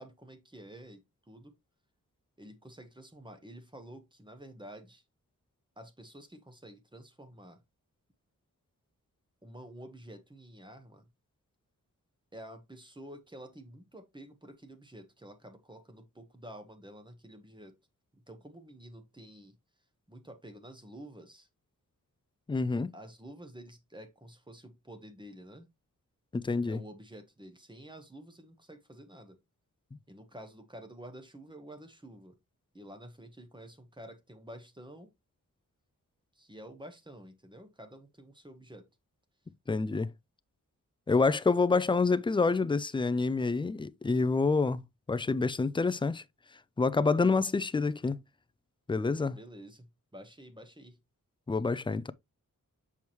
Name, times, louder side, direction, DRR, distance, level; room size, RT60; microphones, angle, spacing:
voice 1, 0.0-1.5 2.4-5.0 5.8-7.6 9.4-11.0 12.3-17.8 18.1-19.6 20.1-21.5 22.9-25.7 26.6-29.4 30.1-32.4 32.7-35.1 36.3-38.9 49.3-51.0, right 1 dB, 15° right, 1.1 m, -50 dB
voice 2, 22.5-22.9 26.3-26.8 39.7-40.1 41.1-44.8 45.1-46.2 46.8-48.2 48.9-49.4 51.5-52.1, left 4 dB, 15° left, 0.3 m, -27 dB
7.1 x 4.7 x 3.0 m
wide cardioid pair, 125°, 34 cm